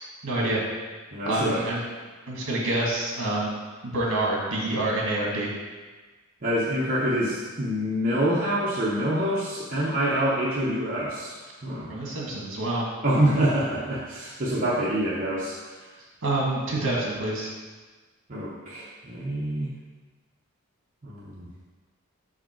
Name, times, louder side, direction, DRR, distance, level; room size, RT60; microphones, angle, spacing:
voice 1, 0.2-0.6 1.2-1.8 2.3-3.6 3.8-5.5 11.9-12.8 16.2-17.5, right 1 dB, 60° right, -3 dB, 1.8 m, -27 dB
voice 2, 1.1-1.6 2.5-2.6 6.4-11.4 11.6-11.9 13.0-15.6 18.3-19.7 21.0-21.5, right 1 dB, 40° right, -7 dB, 0.8 m, -26 dB
5.7 x 4.9 x 4.4 m, 1.4 s
head